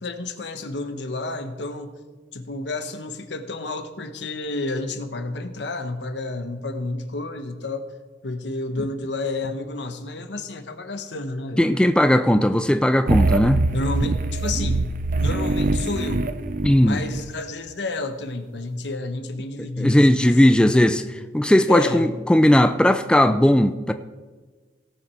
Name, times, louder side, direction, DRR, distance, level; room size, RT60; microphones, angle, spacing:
voice 1, 0.0-1.9 2.3-7.9 8.2-11.7 13.7-14.9 15.2-16.3 16.8-20.3 20.6-21.0 21.7-22.1, left 2 dB, 70° left, 1.0 m, -30 dB
voice 2, 11.6-13.7 16.6-17.0 19.8-21.0 21.3-23.9, left 1 dB, 5° left, 0.3 m, -17 dB
sound 1, 13.1-17.2, right 3 dB, 50° right, 0.6 m, -23 dB
18.0 x 7.2 x 4.5 m
head